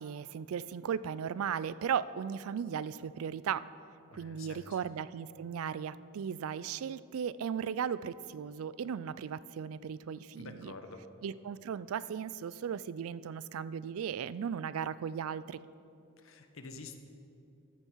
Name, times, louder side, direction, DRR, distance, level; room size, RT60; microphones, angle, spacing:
voice 1, 0.0-3.7 4.1-10.7 11.2-15.6, right 7 dB, 80° right, 17 dB, 0.3 m, -36 dB
voice 2, 4.1-4.8 10.4-11.1 16.2-17.0, left 3 dB, 70° left, 7 dB, 0.9 m, -48 dB
14.0 x 8.8 x 4.6 m, 2.7 s
head